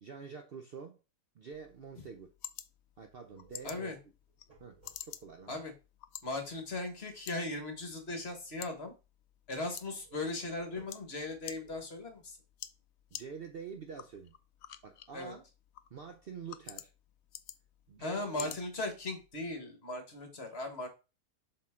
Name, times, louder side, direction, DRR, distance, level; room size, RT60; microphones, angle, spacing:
voice 1, 0.0-1.0 1.3-2.3 3.0-4.0 4.6-5.6 13.1-14.3 14.8-15.5 15.9-16.9 17.9-18.7, right 6 dB, 55° right, 0.7 m, -47 dB
sound 1, 1.5-19.5, left 11 dB, 70° left, 0.6 m, -51 dB
sound 2, 3.2-5.5 10.0-12.3, right 4 dB, 25° right, 3.4 m, -61 dB
voice 2, 3.6-4.0 5.5-5.7 6.2-8.9 9.5-12.4 15.1-15.3 18.0-20.9, left 2 dB, 45° left, 1.8 m, -38 dB
7.5 x 4.4 x 3.7 m
omnidirectional pair, 1.6 m